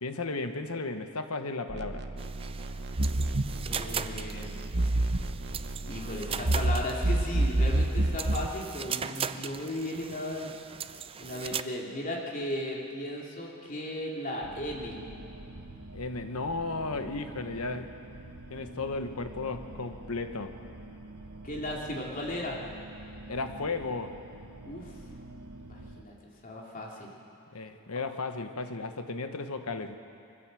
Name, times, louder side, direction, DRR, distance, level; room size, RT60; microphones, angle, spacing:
voice 1, 0.0-2.1 15.9-17.9 18.5-20.5 23.3-24.2 27.5-30.0, left 3 dB, 75° left, 7 dB, 1.2 m, -34 dB
sound 1, 1.7-8.5, right 1 dB, 50° right, 1.0 m, -29 dB
sound 2, 2.2-11.6, right 7 dB, 25° right, 0.4 m, -39 dB
voice 2, 3.6-4.6 5.9-10.5 11.2-15.0 21.4-22.6 24.6-24.9 25.6-26.1 26.4-27.1, left 1 dB, 40° left, -2 dB, 3.1 m, -36 dB
sound 3, 14.4-26.0, right 2 dB, 80° right, 1.3 m, -46 dB
23.0 x 15.0 x 7.7 m, 2.6 s
head